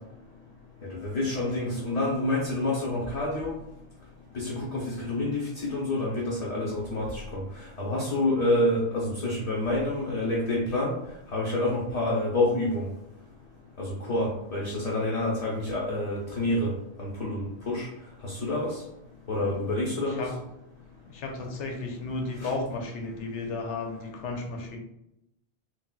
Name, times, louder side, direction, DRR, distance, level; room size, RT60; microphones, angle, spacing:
voice 1, 1.0-3.5 4.3-7.2 7.8-10.9 11.3-12.8 14.1-16.7 17.0-17.9 18.2-18.7 19.3-20.2 22.4-22.5, left 1 dB, 45° left, -4 dB, 0.6 m, -28 dB
voice 2, 21.1-24.8, left 3 dB, 85° left, 3 dB, 0.9 m, -33 dB
3.9 x 2.1 x 2.2 m, 0.83 s
omnidirectional pair, 1.2 m